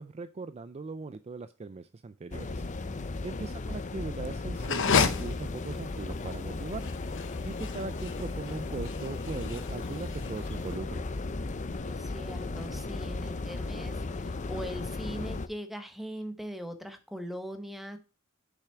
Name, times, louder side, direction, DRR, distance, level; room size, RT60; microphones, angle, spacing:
voice 1, 0.0-2.6 3.2-6.9 7.4-11.1, right 3 dB, 30° right, 0.4 m, -39 dB
sound 1, 2.3-15.5, left 3 dB, 35° left, 0.6 m, -36 dB
voice 2, 3.1-3.7 7.7-7.9 11.8-18.0, equal, ahead, 1.0 m, -41 dB
sound 2, 4.6-10.7, left 5 dB, 60° left, 0.9 m, -32 dB
7.0 x 5.7 x 4.5 m
head